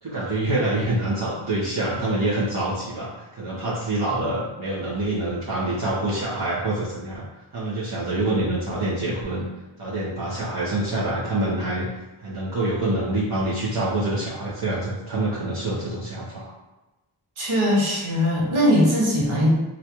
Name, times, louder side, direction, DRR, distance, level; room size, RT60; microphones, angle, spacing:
voice 1, 0.0-7.2 7.5-9.5 9.8-11.9 12.2-16.5, right 1 dB, 50° right, -10 dB, 1.3 m, -26 dB
voice 2, 17.4-19.5, equal, 85° right, -5 dB, 1.2 m, -20 dB
3.1 x 2.6 x 3.0 m, 1.1 s
cardioid pair, 50°, 47 cm